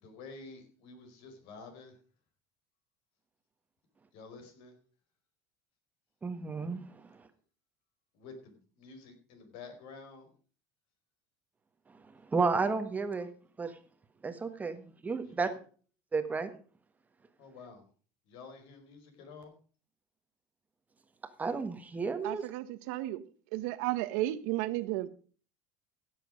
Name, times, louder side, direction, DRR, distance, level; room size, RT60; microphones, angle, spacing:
voice 1, 0.0-1.9 4.1-4.7 8.1-10.3 15.2-15.5 17.4-17.8 18.3-19.5, left 4 dB, 65° left, 4.8 m, -50 dB
voice 2, 6.2-6.8 12.3-13.3 13.6-13.7 14.2-15.5 16.1-16.5 21.4-22.4, right 4 dB, 15° right, 1.3 m, -32 dB
voice 3, 22.2-23.2 23.5-25.1, right 16 dB, 75° right, 1.1 m, -33 dB
16.0 x 7.7 x 5.1 m
supercardioid pair, 130°, 9 cm